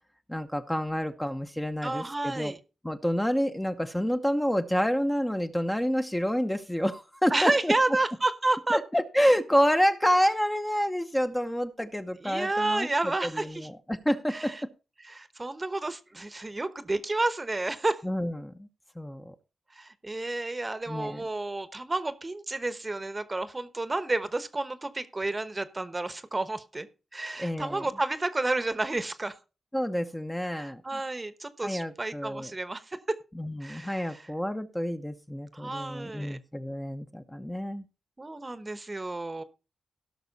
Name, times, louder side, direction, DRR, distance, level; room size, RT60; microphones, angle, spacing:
voice 1, 0.3-2.5 2.8-7.7 8.7-12.9 13.2-14.5 18.0-18.7 19.0-19.3 20.9-21.2 27.4-27.8 29.7-30.8 31.6-32.5 33.3-37.9, equal, 10° left, 0.9 m, -28 dB
voice 2, 1.8-2.6 7.3-8.8 12.2-13.7 14.3-14.6 15.0-18.0 19.7-26.9 27.1-29.4 30.5-33.2 33.6-34.3 35.5-36.4 38.2-39.4, right 2 dB, 25° right, 1.0 m, -31 dB
16.5 x 6.1 x 4.1 m
cardioid pair, 85°, 0 cm